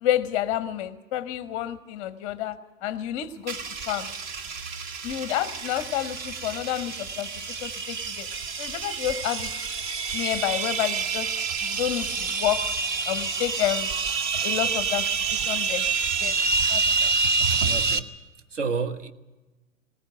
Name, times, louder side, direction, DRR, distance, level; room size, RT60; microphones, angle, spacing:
voice 1, 0.0-3.6 3.9-4.1 5.0-7.3 7.6-8.3 8.6-9.5 10.1-11.3 11.6-12.6 13.1-13.9 14.4-15.1 15.3-15.8 16.2-16.4 16.7-17.1, left 12 dB, 25° left, 0.6 m, -29 dB
sound 1, 3.5-18.0, right 4 dB, 35° right, 0.9 m, -28 dB
voice 2, 17.5-18.1 18.5-19.1, right 5 dB, 60° right, 1.3 m, -30 dB
19.5 x 17.5 x 7.8 m
figure-of-eight pair, 110°, 41 cm